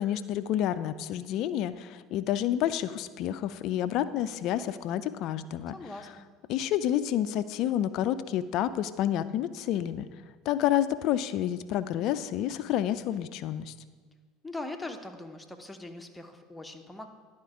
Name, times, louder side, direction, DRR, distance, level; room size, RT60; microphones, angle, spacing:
voice 1, 0.0-5.8 6.5-10.1 10.5-13.7, left 11 dB, 55° left, 13 dB, 0.4 m, -29 dB
voice 2, 5.7-6.3 14.4-17.1, left 2 dB, 10° left, 5 dB, 0.8 m, -41 dB
10.5 x 4.3 x 4.9 m, 1.5 s
hypercardioid pair, 75°, 0 cm